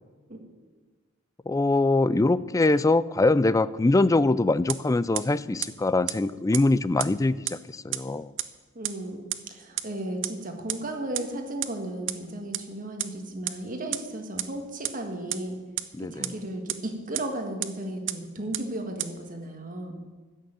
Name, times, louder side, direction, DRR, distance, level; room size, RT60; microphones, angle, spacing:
voice 1, 1.5-8.3 15.9-16.3, left 2 dB, 15° left, 17 dB, 0.3 m, -23 dB
sound 1, 4.7-4.8 5.2-5.3 5.6-5.7 6.1-6.2 6.5-6.6 7.0-7.1 7.5-7.6 7.9-8.0 8.4-8.5 8.8-8.9 9.3-9.4 9.8-9.9 10.2-10.3 10.7-10.8 11.2-11.3 11.6-11.7 12.1-12.2 12.5-12.6 13.0-13.1 13.5-13.6 13.9-14.0 14.4-14.5 14.8-14.9 15.3-15.4 15.8-15.9 16.2-16.3 16.7-16.8 17.1-17.2 17.6-17.7 18.1-18.2 18.5-18.6 19.0-19.1, right 14 dB, 65° right, 0.7 m, -28 dB
voice 2, 8.8-15.6 16.0-19.9, right 1 dB, 45° right, 4 dB, 1.9 m, -35 dB
14.0 x 6.6 x 9.1 m, 1.3 s
head